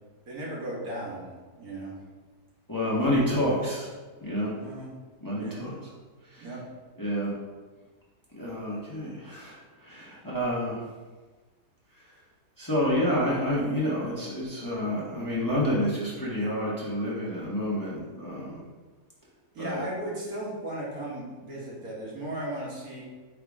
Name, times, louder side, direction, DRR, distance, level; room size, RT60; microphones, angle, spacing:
voice 1, 0.3-1.3 1.6-2.0 4.6-5.0 5.4-5.8 6.4-6.6 19.5-23.0, right 1 dB, 60° right, -5 dB, 1.9 m, -36 dB
voice 2, 2.7-3.9 4.2-4.5 5.2-5.7 6.3-6.5 7.0-7.3 8.3-10.8 12.6-18.6 19.6-19.8, equal, 15° left, -7 dB, 1.3 m, -28 dB
8.5 x 3.5 x 3.6 m, 1.3 s
omnidirectional pair, 1.8 m